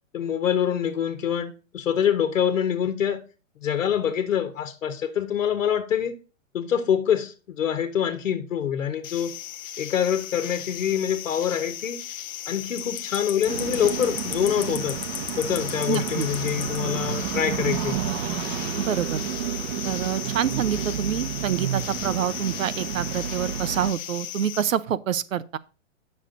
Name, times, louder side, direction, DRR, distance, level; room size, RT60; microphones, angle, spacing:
voice 1, 0.1-3.2 3.6-6.2 6.5-9.3 9.8-12.0 12.5-15.0 15.4-18.0, left 9 dB, 70° left, 1.3 m, -25 dB
sound 1, 9.0-24.6, left 12 dB, 20° left, 0.3 m, -35 dB
sound 2, 13.5-23.9, right 10 dB, 50° right, 1.0 m, -31 dB
voice 2, 15.9-16.3 18.8-19.2 19.8-25.6, right 9 dB, 75° right, 0.8 m, -27 dB
9.0 x 6.6 x 3.8 m
hypercardioid pair, 120°, 40 cm